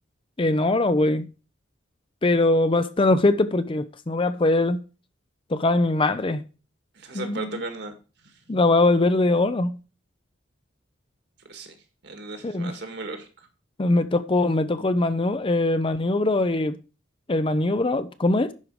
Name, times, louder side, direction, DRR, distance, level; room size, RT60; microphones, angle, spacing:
voice 1, 0.4-1.3 2.2-4.8 5.5-6.4 7.1-7.6 8.5-9.8 12.4-12.7 13.8-16.8 17.3-18.5, left 2 dB, 25° left, 0.5 m, -22 dB
voice 2, 7.0-7.9 11.5-11.7 12.0-13.3, right 3 dB, 60° right, 1.9 m, -35 dB
11.0 x 5.1 x 4.7 m
head